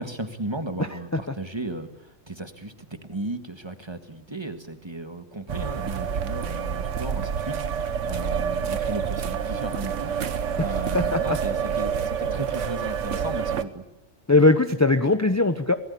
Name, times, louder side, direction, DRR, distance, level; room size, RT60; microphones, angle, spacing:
voice 1, 0.0-13.8, right 2 dB, 20° right, 8 dB, 1.6 m, -35 dB
sound 1, 5.5-13.6, right 7 dB, 80° right, 1.4 m, -28 dB
voice 2, 10.9-11.4 14.3-15.7, left 2 dB, 15° left, 9 dB, 0.8 m, -20 dB
26.0 x 18.0 x 8.4 m, 0.90 s
omnidirectional pair, 1.2 m